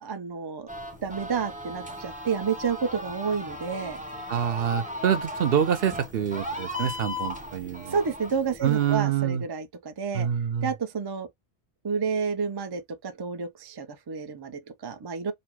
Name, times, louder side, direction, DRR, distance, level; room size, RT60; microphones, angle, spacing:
voice 1, 0.0-0.7 1.0-4.0 7.9-10.3 10.6-11.3 11.8-15.3, right 6 dB, 40° right, 0.3 m, -30 dB
sound 1, 0.7-8.9, left 1 dB, 10° right, 0.6 m, -37 dB
voice 2, 4.3-8.0 8.6-9.4 10.1-10.7, right 9 dB, 65° right, 0.8 m, -26 dB
4.1 x 2.0 x 4.4 m
omnidirectional pair, 1.1 m